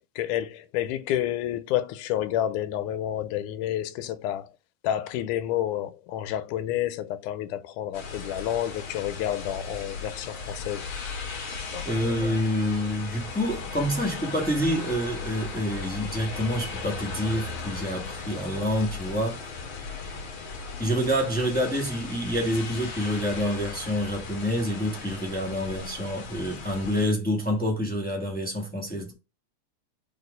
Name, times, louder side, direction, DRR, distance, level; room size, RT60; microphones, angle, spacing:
voice 1, 0.2-4.5 4.8-10.9, left 12 dB, 90° left, 2.1 m, -29 dB
sound 1, 7.9-27.1, left 4 dB, 50° left, 1.8 m, -37 dB
voice 2, 11.8-19.6 20.8-29.1, equal, 10° left, 0.4 m, -27 dB
4.7 x 4.1 x 5.1 m
omnidirectional pair, 3.5 m